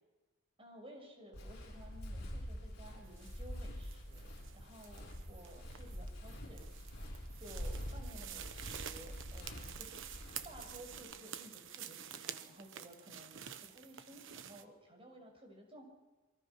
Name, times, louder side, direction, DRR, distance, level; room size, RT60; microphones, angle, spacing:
voice 1, 0.6-6.7 7.4-10.0 10.4-15.8, right 1 dB, 25° right, 3 dB, 6.0 m, -55 dB
Walk footsteps, 1.3-11.0, equal, 50° left, 6.9 m, -46 dB
sound 1, 3.1-14.6, right 9 dB, 60° right, 1.2 m, -50 dB
28.0 x 24.0 x 5.9 m, 1.2 s
head